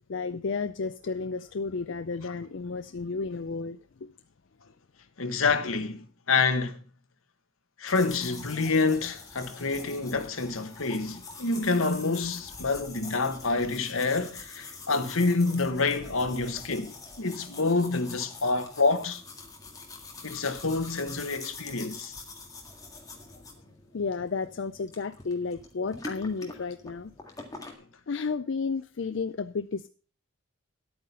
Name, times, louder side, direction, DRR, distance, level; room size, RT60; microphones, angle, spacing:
voice 1, 0.1-4.1 23.9-27.1 28.1-29.9, left 4 dB, 60° left, 0.4 m, -32 dB
voice 2, 5.2-6.8 7.8-19.2 20.2-22.1, left 3 dB, 80° left, 1.3 m, -27 dB
sound 1, 7.9-27.7, left 3 dB, 15° left, 1.8 m, -45 dB
11.0 x 8.8 x 5.4 m
head